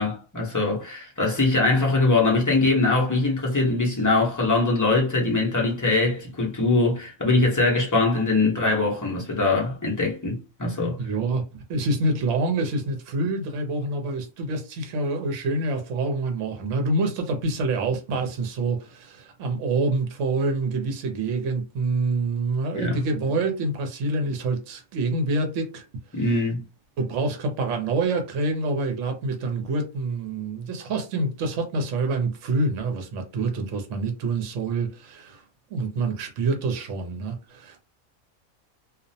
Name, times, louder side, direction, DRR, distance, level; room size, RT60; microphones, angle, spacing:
voice 1, 0.0-11.0 22.7-23.0 26.1-26.6, left 3 dB, 30° left, 0.3 m, -22 dB
voice 2, 11.0-11.4 11.7-25.8 26.1-26.4 27.0-35.4 35.7-37.8, right 2 dB, 70° right, 0.9 m, -26 dB
2.4 x 2.0 x 2.6 m
omnidirectional pair, 1.4 m